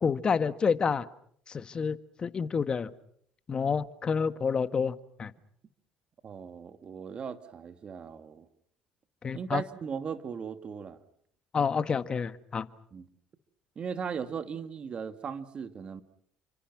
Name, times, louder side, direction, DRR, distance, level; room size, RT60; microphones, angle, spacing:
voice 1, 0.0-1.1 1.5-2.9 3.5-5.3 9.2-9.6 11.5-12.7, left 6 dB, 35° left, 12 dB, 1.6 m, -29 dB
voice 2, 6.2-8.5 9.3-11.0 12.9-13.1 13.8-16.0, right 6 dB, 45° right, 9 dB, 2.4 m, -38 dB
29.5 x 25.5 x 6.2 m, 0.66 s
supercardioid pair, 75°, 3 cm